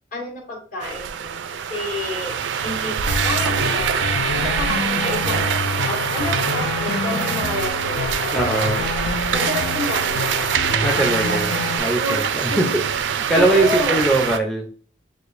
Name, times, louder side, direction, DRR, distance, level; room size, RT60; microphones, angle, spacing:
voice 1, 0.1-2.4 2.6-3.0 3.2-3.9 4.3-8.7 9.3-10.5 11.2-11.4 11.8-12.8 13.3-14.0, left 1 dB, 50° left, -2 dB, 1.5 m, -29 dB
sound 1, 0.8-14.4, right 7 dB, 80° right, 0.3 m, -24 dB
sound 2, 3.1-11.8, left 4 dB, 70° left, 0.6 m, -28 dB
voice 2, 8.3-8.9 10.8-12.8 13.3-14.7, right 2 dB, ahead, 0 dB, 0.5 m, -21 dB
6.6 x 2.4 x 2.5 m, 0.43 s
head